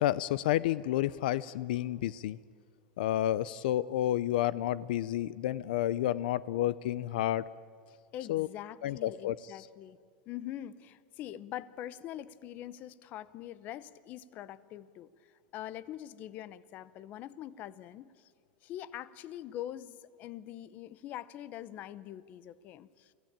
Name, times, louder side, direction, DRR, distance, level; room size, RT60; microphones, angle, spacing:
voice 1, 0.0-2.4 3.0-7.4 8.3-8.5 8.8-9.4, left 13 dB, 75° left, 19 dB, 0.5 m, -30 dB
voice 2, 8.1-10.0 10.3-15.1 15.5-18.3 18.6-23.1, left 12 dB, 35° left, 17 dB, 0.7 m, -43 dB
25.0 x 15.5 x 8.8 m, 2.1 s
supercardioid pair, 155°, 5 cm